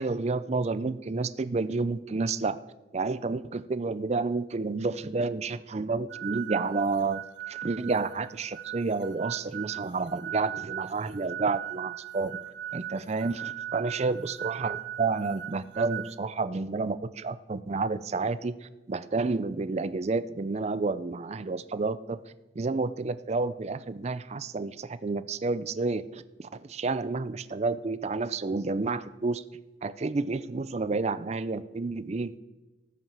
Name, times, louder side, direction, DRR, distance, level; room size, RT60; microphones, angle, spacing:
voice 1, 0.0-2.6 2.9-12.4 12.7-22.2 22.6-29.4 29.8-32.4, right 3 dB, 35° right, 14 dB, 0.4 m, -30 dB
sound 1, 6.1-16.1, right 12 dB, 60° right, 1.2 m, -39 dB
14.0 x 5.8 x 7.3 m, 1.1 s
head